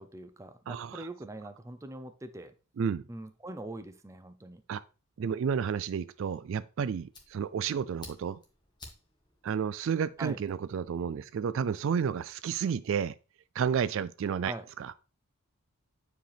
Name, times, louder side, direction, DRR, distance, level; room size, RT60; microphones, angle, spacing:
voice 1, 0.0-2.5 3.1-4.6 10.2-10.4 14.4-14.6, right 1 dB, 15° right, 0.6 m, -42 dB
voice 2, 0.7-1.1 2.8-3.0 4.7-4.8 5.2-8.4 9.4-13.1 13.5-14.9, right 7 dB, 60° right, 0.3 m, -31 dB
Fire, 6.5-11.1, left 3 dB, 20° left, 1.5 m, -55 dB
8.9 x 4.9 x 3.4 m
head